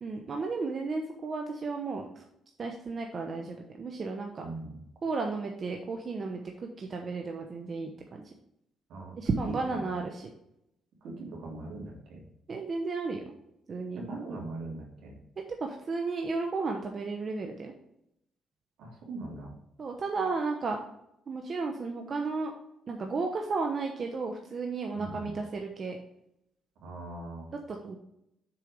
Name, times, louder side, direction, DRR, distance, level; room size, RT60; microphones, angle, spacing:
voice 1, 0.0-2.2 2.6-4.5 5.0-6.4 6.8-8.3 9.2-10.3 12.5-13.2 13.7-14.0 15.5-17.7 19.8-20.8 21.3-22.5 22.9-26.0 27.7-28.0, right 4 dB, 45° right, 2 dB, 0.9 m, -33 dB
voice 2, 4.4-4.8 8.9-9.3 9.7-9.9 11.0-12.2 13.9-15.2 18.8-19.5 24.9-25.4 26.8-27.5, right 2 dB, 80° right, -2 dB, 3.0 m, -41 dB
7.0 x 4.6 x 5.2 m, 0.79 s
cardioid pair, 90°, 0 cm